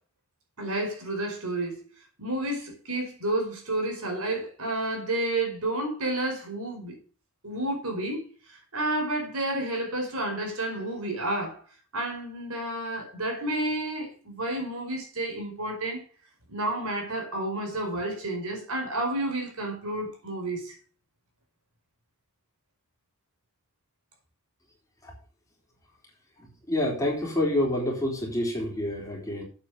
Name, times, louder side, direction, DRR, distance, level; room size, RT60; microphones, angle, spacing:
voice 1, 0.6-1.9 2.2-6.9 7.4-11.6 11.9-16.0 16.5-20.8, right 1 dB, 85° right, 4.9 m, -30 dB
voice 2, 26.7-29.4, left 1 dB, 15° left, 3.9 m, -27 dB
8.8 x 8.0 x 6.5 m
head